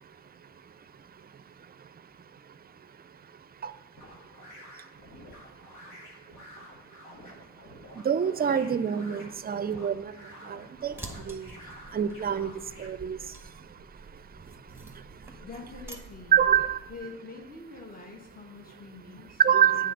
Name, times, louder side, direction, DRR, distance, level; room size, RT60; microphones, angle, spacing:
sound 1, 4.0-12.9, left 1 dB, 90° left, 1.9 m, -50 dB
voice 1, 8.0-10.0 10.5-10.9 11.3-11.5 11.9-12.5 12.8-13.2 16.3-16.8 19.4-19.9, right 8 dB, 30° right, 14 dB, 0.5 m, -25 dB
sound 2, 10.8-17.0, right 2 dB, 5° right, 1.2 m, -47 dB
voice 2, 15.4-16.5 16.9-19.9, left 3 dB, 30° left, 1 dB, 1.3 m, -45 dB
7.6 x 3.9 x 6.6 m, 0.92 s
cardioid pair, 90°, 30 cm